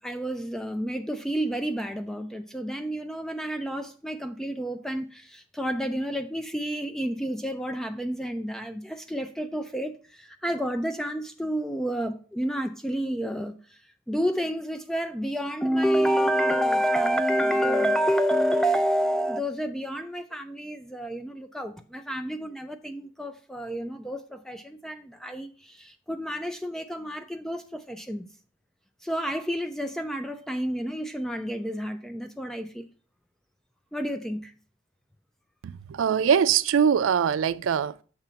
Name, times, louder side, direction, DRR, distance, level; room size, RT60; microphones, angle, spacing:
voice 1, 0.0-13.8 14.1-28.3 29.0-32.8 33.9-34.5, equal, 5° left, 0.3 m, -29 dB
voice 2, 35.6-38.0, right 7 dB, 80° right, 0.3 m, -23 dB
6.9 x 3.0 x 5.6 m
head